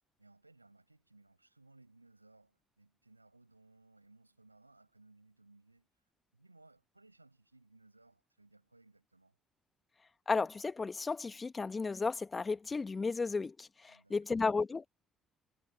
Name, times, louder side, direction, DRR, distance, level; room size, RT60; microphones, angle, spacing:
voice 1, 0.2-5.9 6.3-9.3 13.9-14.4, right 2 dB, 90° right, 6.6 m, -63 dB
voice 2, 10.3-14.9, left 4 dB, 30° left, 1.6 m, -34 dB
figure-of-eight pair, 45°, 0 cm